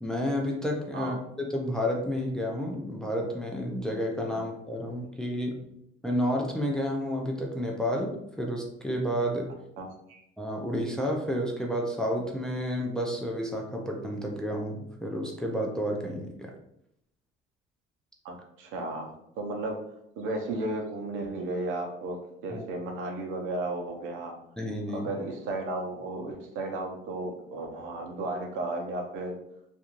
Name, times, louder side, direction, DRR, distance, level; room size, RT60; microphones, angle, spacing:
voice 1, 0.0-5.7 6.0-9.6 10.4-16.5 22.5-22.6 24.6-25.1, equal, 5° left, 0 dB, 0.4 m, -31 dB
voice 2, 9.8-10.2 18.2-19.8 20.2-22.2 22.4-24.3 24.9-29.4, right 2 dB, 75° right, 2 dB, 0.7 m, -34 dB
2.5 x 2.3 x 3.0 m, 0.77 s
cardioid pair, 110°, 20 cm